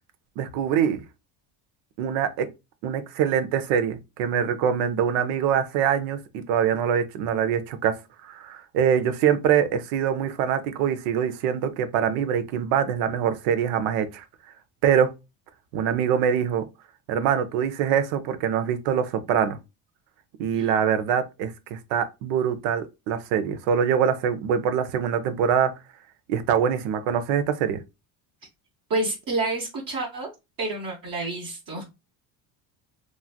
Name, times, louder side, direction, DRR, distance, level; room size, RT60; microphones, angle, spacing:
voice 1, 0.4-1.0 2.0-2.5 2.8-7.9 8.2-14.2 14.8-15.1 15.7-16.6 17.1-19.6 20.4-25.7 26.3-27.8, right 8 dB, 80° right, 0.7 m, -24 dB
voice 2, 28.9-30.3 30.6-31.8, right 2 dB, 45° right, 0.9 m, -29 dB
3.1 x 2.5 x 2.3 m
supercardioid pair, 85°, 48 cm